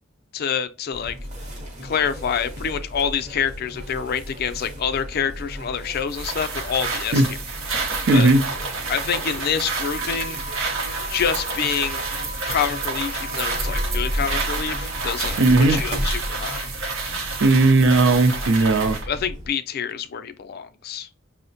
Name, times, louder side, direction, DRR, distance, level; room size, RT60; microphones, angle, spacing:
voice 1, 0.3-1.1 1.8-7.2 8.1-8.3 8.9-10.4 11.1-12.0 12.5-15.4 15.7-16.7 19.1-21.1, left 7 dB, 50° left, 0.4 m, -27 dB
sound 1, 0.9-19.5, equal, 35° right, 0.8 m, -33 dB
sound 2, 6.1-19.1, right 4 dB, 85° right, 0.8 m, -29 dB
voice 2, 8.1-8.5 15.4-15.8 17.4-19.0, right 2 dB, 65° right, 0.5 m, -16 dB
5.6 x 2.1 x 2.6 m
head